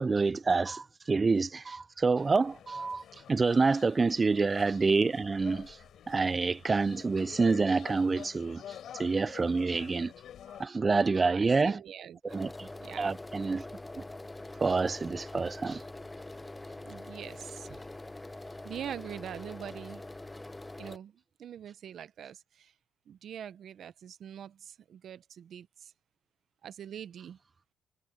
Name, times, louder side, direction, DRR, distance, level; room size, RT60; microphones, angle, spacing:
voice 1, 0.0-3.0 3.3-5.8 6.1-10.1 10.6-11.8 12.3-12.7 13.0-13.6 14.6-15.8, right 4 dB, 30° right, 0.5 m, -27 dB
sound 1, 2.2-10.7, left 10 dB, 70° left, 7.5 m, -49 dB
voice 2, 11.2-12.4 12.8-13.2 16.8-17.8 18.6-20.0 20.8-22.7 23.1-25.9 26.6-27.4, right 9 dB, 65° right, 1.0 m, -44 dB
sound 2, 12.3-21.0, left 2 dB, 15° left, 0.8 m, -44 dB
cardioid pair, 90°, 0 cm